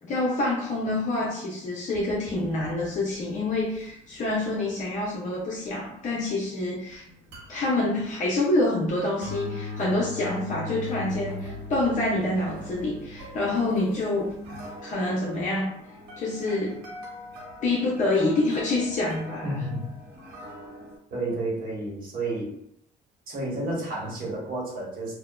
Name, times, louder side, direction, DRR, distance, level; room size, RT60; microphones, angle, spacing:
voice 1, 0.0-7.0 7.5-14.3 14.8-15.7 16.2-16.8 17.6-19.4, left 2 dB, 45° left, -5 dB, 0.7 m, -27 dB
sound 1, 1.9-21.0, left 1 dB, 85° right, 0.9 m, -42 dB
voice 2, 19.4-19.9 21.1-22.6 23.3-25.1, right 2 dB, 55° right, -3 dB, 1.0 m, -31 dB
2.6 x 2.1 x 2.3 m, 0.73 s
cardioid pair, 110°, 17 cm